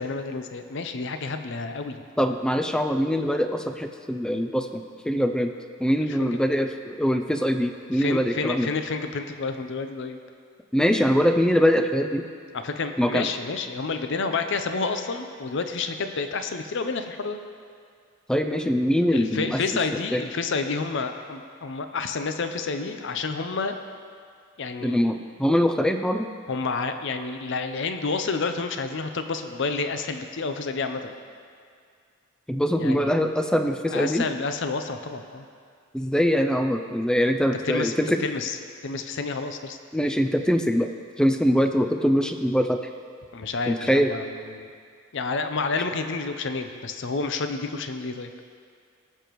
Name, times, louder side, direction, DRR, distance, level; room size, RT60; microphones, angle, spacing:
voice 1, 0.0-2.0 6.1-6.4 7.9-10.2 12.5-17.4 19.1-23.8 24.6-25.0 26.5-31.2 32.8-33.1 33.9-35.5 37.6-37.9 38.2-38.6 38.8-39.8 43.3-44.7 45.1-48.3, left 4 dB, 60° left, 7 dB, 0.6 m, -29 dB
voice 2, 2.2-5.5 5.8-8.7 10.7-12.2 13.0-13.3 18.3-19.6 20.1-20.2 24.8-26.3 32.5-34.2 35.9-38.2 39.9-40.9 41.2-42.8 43.7-44.1, equal, 5° left, 7 dB, 0.4 m, -23 dB
17.0 x 6.8 x 3.1 m, 2.2 s
head